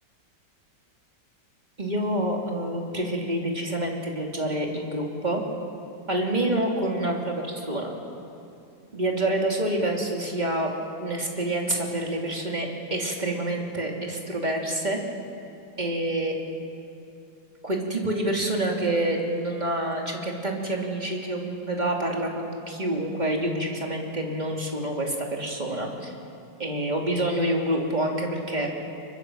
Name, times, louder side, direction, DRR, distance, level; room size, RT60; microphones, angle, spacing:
voice 1, 1.8-5.4 6.1-7.9 8.9-10.7 11.0-15.0 15.8-16.5 17.6-26.1 26.6-28.7, right 1 dB, 25° right, 0 dB, 3.0 m, -27 dB
25.5 x 22.5 x 7.6 m, 2.7 s
omnidirectional pair, 2.0 m